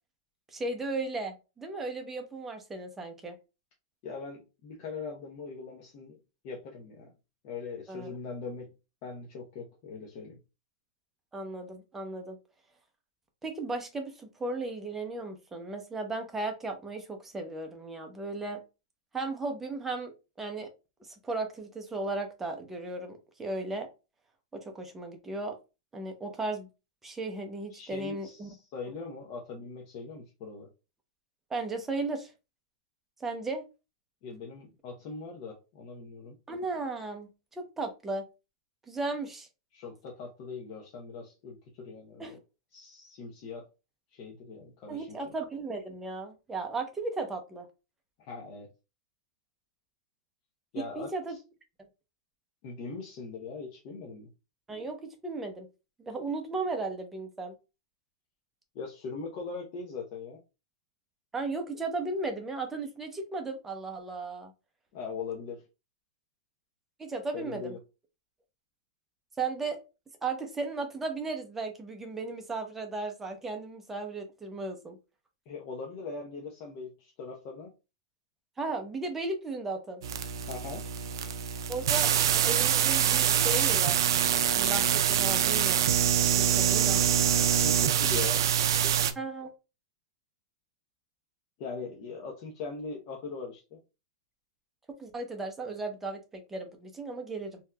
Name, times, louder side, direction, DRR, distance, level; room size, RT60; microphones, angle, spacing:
voice 1, 0.5-3.3 7.9-8.1 11.3-12.4 13.4-18.6 19.1-20.7 21.0-23.9 24.5-25.6 25.9-26.7 27.0-28.5 31.5-32.3 33.2-33.6 36.5-37.3 37.6-38.3 38.9-39.5 42.2-42.4 44.9-47.7 50.7-51.4 54.7-55.7 56.0-57.6 61.3-64.5 67.0-67.7 69.4-69.8 70.2-75.0 78.6-80.0 81.7-84.0 84.6-85.8 86.3-87.0 89.2-89.5 94.9-97.6, right 3 dB, 10° right, 0.7 m, -35 dB
voice 2, 4.0-6.2 6.4-7.1 7.4-8.7 9.0-10.4 27.7-30.7 34.2-36.4 39.7-42.4 42.7-43.7 44.1-45.3 48.2-48.7 50.7-51.4 52.6-54.3 58.7-60.4 64.9-65.6 67.3-67.8 75.5-77.7 80.5-80.8 87.5-88.4 88.8-88.9 91.6-93.8, left 4 dB, 45° left, 0.8 m, -41 dB
sound 1, 80.0-89.1, right 9 dB, 70° right, 0.4 m, -25 dB
3.5 x 2.8 x 2.2 m
hypercardioid pair, 140°, 2 cm